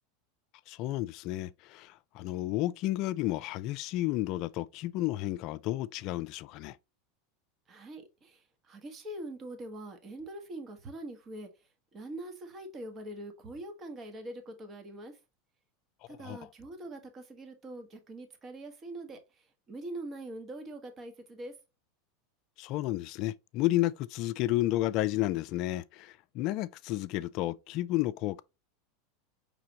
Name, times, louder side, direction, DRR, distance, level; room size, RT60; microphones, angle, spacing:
voice 1, 0.7-6.8 16.2-16.4 22.6-28.4, left 16 dB, 55° left, 0.3 m, -32 dB
voice 2, 7.7-11.5 11.9-15.1 16.1-19.2 19.7-21.5, right 1 dB, 30° right, 1.2 m, -43 dB
4.9 x 3.3 x 2.8 m
hypercardioid pair, 100°, 0 cm